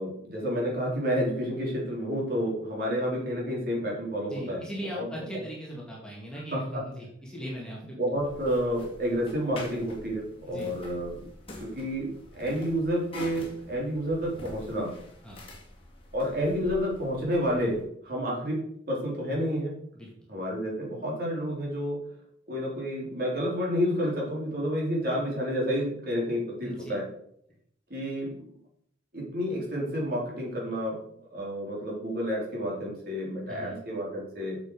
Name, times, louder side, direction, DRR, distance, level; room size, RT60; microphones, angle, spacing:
voice 1, 0.0-5.4 6.5-6.8 8.0-11.2 11.6-14.9 16.1-18.6 18.9-19.7 20.3-22.0 22.5-27.1 27.9-28.4 29.1-34.6, equal, 50° right, -3 dB, 3.8 m, -30 dB
voice 2, 4.3-8.0 10.5-10.7 15.2-15.4 20.0-20.1 26.6-26.9 33.5-33.8, equal, 5° left, -4 dB, 2.3 m, -39 dB
sound 1, 8.1-17.8, left 1 dB, 30° left, 2.3 m, -46 dB
8.4 x 7.3 x 4.9 m, 0.70 s
head